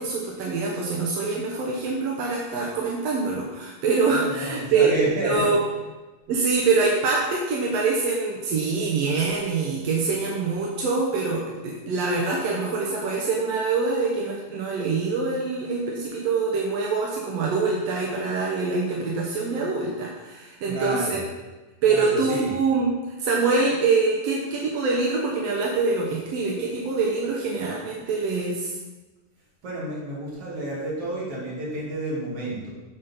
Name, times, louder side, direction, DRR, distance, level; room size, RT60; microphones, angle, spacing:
voice 1, 0.0-4.9 5.2-5.6 6.3-21.2 21.8-22.9 23.2-28.7, right 4 dB, 70° right, -2 dB, 1.7 m, -24 dB
voice 2, 4.1-5.5 20.6-21.2 21.9-22.5 29.6-32.7, right 1 dB, 50° right, -6 dB, 3.0 m, -30 dB
8.9 x 4.2 x 5.6 m, 1.2 s
omnidirectional pair, 3.9 m